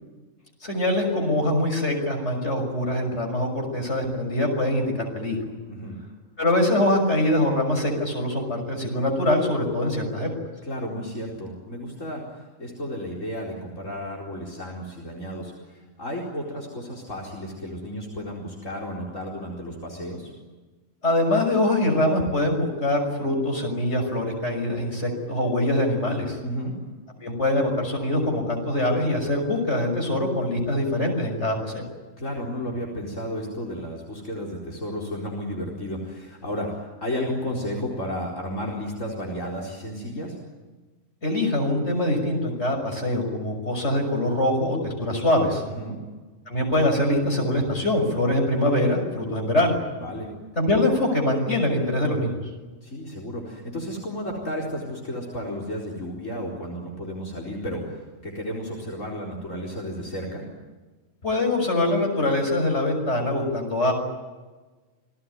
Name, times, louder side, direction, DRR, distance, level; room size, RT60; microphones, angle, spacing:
voice 1, 0.6-5.5 6.4-10.3 21.0-26.4 27.2-31.9 41.2-45.6 46.5-49.8 50.6-52.4 61.2-63.9, left 1 dB, 60° left, 3 dB, 6.5 m, -23 dB
voice 2, 5.7-6.0 10.6-12.2 12.6-20.3 26.4-26.7 32.2-40.4 45.7-46.0 50.0-50.3 52.8-60.4, equal, 80° left, 0 dB, 4.8 m, -33 dB
28.5 x 19.5 x 9.5 m, 1.3 s
omnidirectional pair, 1.3 m